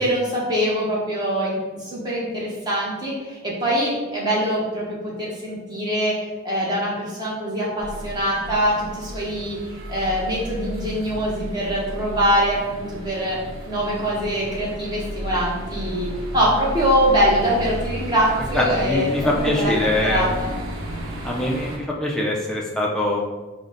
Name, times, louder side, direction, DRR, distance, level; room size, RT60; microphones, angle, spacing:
voice 1, 0.0-6.1 6.4-9.6 9.9-13.4 13.6-16.1 16.3-19.7 20.0-20.5, equal, 20° right, -6 dB, 0.9 m, -23 dB
sound 1, 7.8-21.8, equal, 80° right, 0.8 m, -33 dB
voice 2, 18.5-20.2 21.2-23.2, left 1 dB, 5° left, -3 dB, 0.3 m, -23 dB
3.9 x 2.1 x 3.7 m, 1.2 s
head